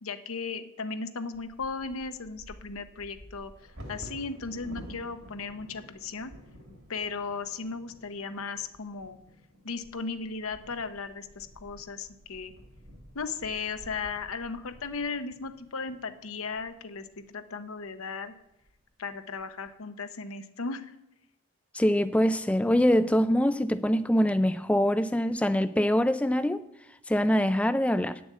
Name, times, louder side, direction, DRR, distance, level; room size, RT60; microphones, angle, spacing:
voice 1, 0.0-3.5 3.9-6.3 6.9-9.2 9.6-12.5 13.1-18.3 19.0-21.0, left 4 dB, 75° left, 0.8 m, -36 dB
Bird vocalization bird call bird song / Wind / Thunder, 1.3-17.2 17.9-18.0 18.3-18.7 19.1-19.7, equal, 75° right, 2.7 m, -50 dB
voice 2, 21.7-26.6 27.1-28.2, equal, 5° left, 0.3 m, -24 dB
9.6 x 7.1 x 7.4 m
head